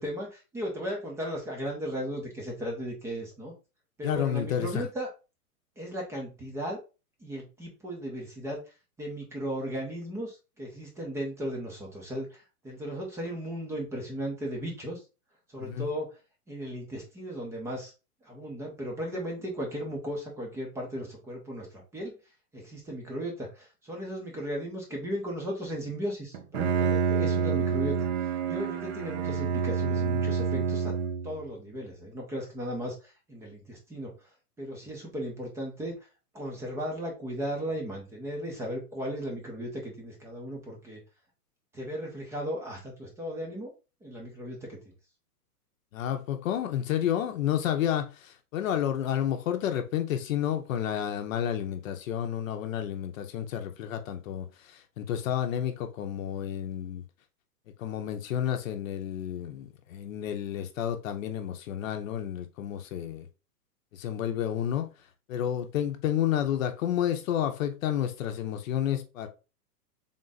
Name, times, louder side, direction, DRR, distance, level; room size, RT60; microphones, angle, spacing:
voice 1, 0.0-3.5 4.0-5.1 5.8-6.8 7.2-8.6 9.0-15.0 15.5-16.2 16.5-17.9 18.2-22.1 22.5-30.9 31.2-34.1 34.6-35.9 36.3-41.0 41.7-43.7 44.0-44.8, equal, 5° right, 0.6 m, -36 dB
voice 2, 4.0-4.9 15.6-15.9 45.9-57.0 57.8-63.3 63.9-64.9 65.3-69.3, left 10 dB, 55° left, 0.8 m, -30 dB
Bowed string instrument, 26.3-31.4, right 6 dB, 45° right, 0.7 m, -28 dB
3.7 x 2.5 x 4.0 m
hypercardioid pair, 145°, 47 cm